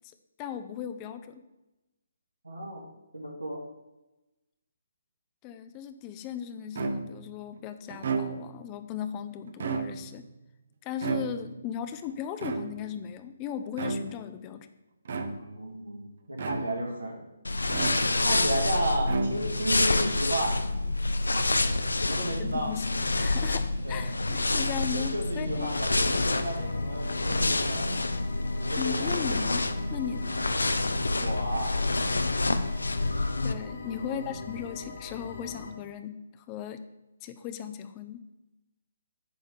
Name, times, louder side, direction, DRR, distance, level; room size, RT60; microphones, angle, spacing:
voice 1, 0.4-1.4 5.4-10.2 10.8-14.7 22.4-22.9 23.2-25.7 28.7-30.4 33.4-36.8 37.2-38.2, left 9 dB, 20° left, 9 dB, 0.6 m, -37 dB
voice 2, 2.4-2.8 3.1-3.6 11.6-11.7 15.3-17.2 18.2-20.6 22.0-22.7 23.8-24.0 24.9-27.9 28.6-29.1 31.2-31.8 33.8-34.5, right 1 dB, 80° right, 0 dB, 1.8 m, -33 dB
sound 1, 6.7-7.3 7.9-8.7 9.5-10.2 11.0-11.7 12.4-13.0 13.7-14.3 15.0-15.6 16.4-17.0 17.7-18.4 19.0-19.7, right 4 dB, 50° right, 0.7 m, -33 dB
sound 2, 17.4-33.5, left 2 dB, 70° left, 0.6 m, -28 dB
sound 3, 25.7-35.7, left 3 dB, 55° left, 1.7 m, -42 dB
9.8 x 3.6 x 6.8 m, 1.0 s
figure-of-eight pair, 135°, 0 cm